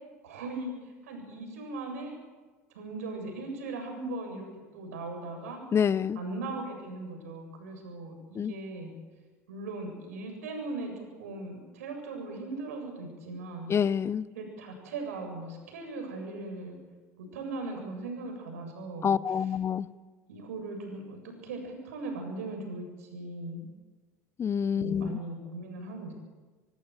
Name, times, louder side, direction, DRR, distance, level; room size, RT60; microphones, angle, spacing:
voice 1, 0.2-2.1 2.7-4.5 4.7-5.6 6.1-8.9 9.5-10.9 11.2-13.7 14.4-16.8 17.2-19.1 20.3-23.7 24.7-26.1, right 2 dB, 75° right, 4 dB, 7.8 m, -39 dB
voice 2, 5.7-6.2 8.3-8.5 13.7-14.3 19.0-19.9 24.4-25.2, left 7 dB, 35° left, 19 dB, 0.8 m, -27 dB
26.5 x 18.5 x 8.2 m, 1.3 s
hypercardioid pair, 70°, 8 cm